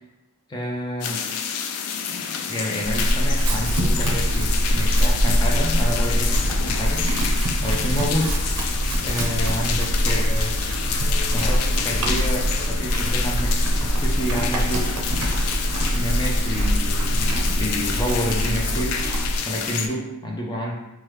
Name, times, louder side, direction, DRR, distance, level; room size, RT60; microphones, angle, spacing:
voice 1, 0.5-1.2 2.1-7.0 7.6-8.4 9.0-10.6 11.3-13.5 13.8-14.9 15.9-18.9 19.4-20.7, equal, 20° left, -2 dB, 0.4 m, -29 dB
sound 1, 1.0-19.9, left 7 dB, 85° left, 0.3 m, -29 dB
Chewing mastication / Livestock farm animals working animals, 2.8-19.4, equal, 80° right, 0.5 m, -23 dB
3.3 x 2.2 x 3.0 m, 0.98 s
head